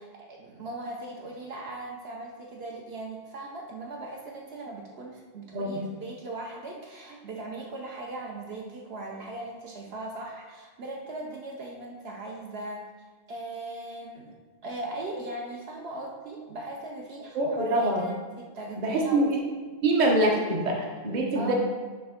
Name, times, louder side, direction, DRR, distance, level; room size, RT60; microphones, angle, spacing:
voice 1, 0.0-12.8 13.3-14.3 14.6-19.3 21.3-21.5, right 2 dB, 70° right, -1 dB, 1.0 m, -39 dB
voice 2, 17.3-18.0 18.8-19.4 19.8-21.5, right 1 dB, 45° right, 0 dB, 1.0 m, -25 dB
6.6 x 3.4 x 5.0 m, 1.4 s
omnidirectional pair, 1.1 m